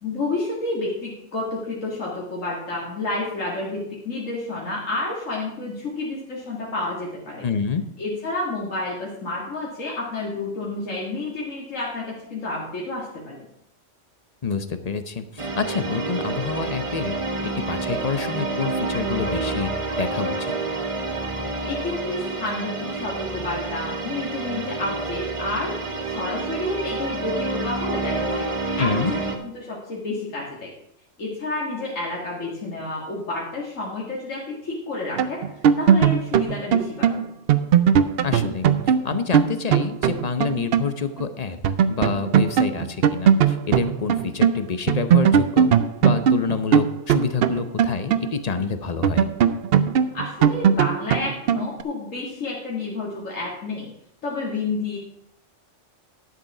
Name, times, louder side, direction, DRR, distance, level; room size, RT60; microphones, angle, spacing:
voice 1, 0.0-7.5 8.0-13.5 21.7-25.7 26.0-28.4 28.8-29.0 29.4-30.7 31.2-35.4 35.8-37.3 50.1-53.9 54.2-55.0, left 2 dB, 90° left, -4 dB, 2.4 m, -30 dB
voice 2, 7.4-7.8 14.4-19.7 20.0-20.6 28.8-29.1 38.2-45.7 46.0-49.3, left 5 dB, 40° left, 10 dB, 0.7 m, -27 dB
sound 1, 15.4-29.4, right 3 dB, 30° right, 1.0 m, -28 dB
sound 2, 35.2-40.9 41.2-41.3 41.6-44.6 44.9-48.6 49.0-51.8, right 8 dB, 60° right, 0.7 m, -19 dB
11.0 x 6.7 x 5.9 m, 0.74 s
omnidirectional pair, 1.3 m